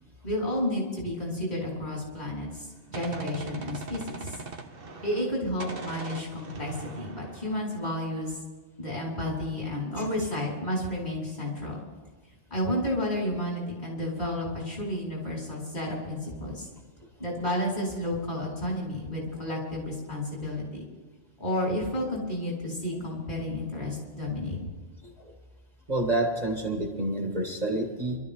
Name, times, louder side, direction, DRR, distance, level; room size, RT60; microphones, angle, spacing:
voice 1, 0.2-4.4 5.0-8.4 8.8-11.8 12.5-16.7 17.2-20.8 21.4-24.6, left 1 dB, 45° left, -5 dB, 5.4 m, -31 dB
Gunshot gunfire, 2.5-5.3 5.6-8.3, right 3 dB, 55° right, 1.4 m, -41 dB
voice 2, 25.9-28.2, right 1 dB, 35° right, 1 dB, 2.0 m, -28 dB
24.5 x 13.0 x 3.9 m, 1.3 s
omnidirectional pair, 1.2 m